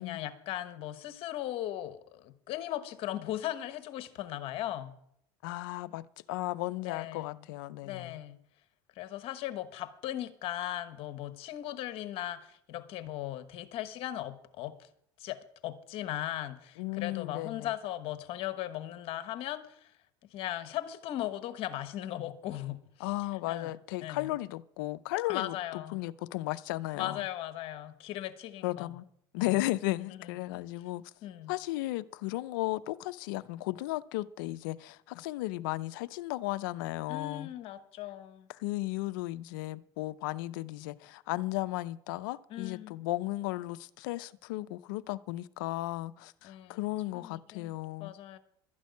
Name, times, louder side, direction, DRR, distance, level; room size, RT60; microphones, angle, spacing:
voice 1, 0.0-4.9 6.8-7.4 7.8-8.4 8.9-14.9 15.2-19.9 20.3-23.1 23.5-23.7 24.0-24.3 25.3-26.0 26.9-28.9 29.4-29.6 30.1-30.2 31.2-31.5 37.1-38.5 42.5-43.0 46.4-46.8 47.1-47.7 48.0-48.4, left 13 dB, 60° left, 1.2 m, -38 dB
voice 2, 5.4-8.2 16.8-17.7 23.0-27.3 28.6-29.1 29.3-31.1 31.5-37.5 38.5-48.1, left 18 dB, 85° left, 0.5 m, -35 dB
12.5 x 6.4 x 9.4 m
supercardioid pair, 105°, 11 cm